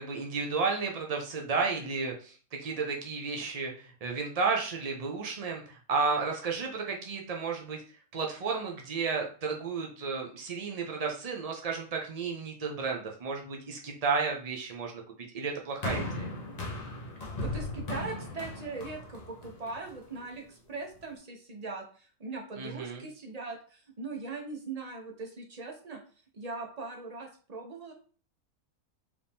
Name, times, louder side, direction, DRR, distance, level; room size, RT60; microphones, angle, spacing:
voice 1, 0.0-7.8 8.1-15.0 15.3-16.3 22.6-23.0, right 4 dB, 70° right, 1 dB, 0.3 m, -32 dB
sound 1, 15.8-20.2 21.0-21.1, left 1 dB, 35° left, 0.9 m, -37 dB
voice 2, 17.2-26.0 26.3-27.9, right 3 dB, 35° right, 1 dB, 0.8 m, -40 dB
4.8 x 2.7 x 3.4 m, 0.40 s
omnidirectional pair, 1.6 m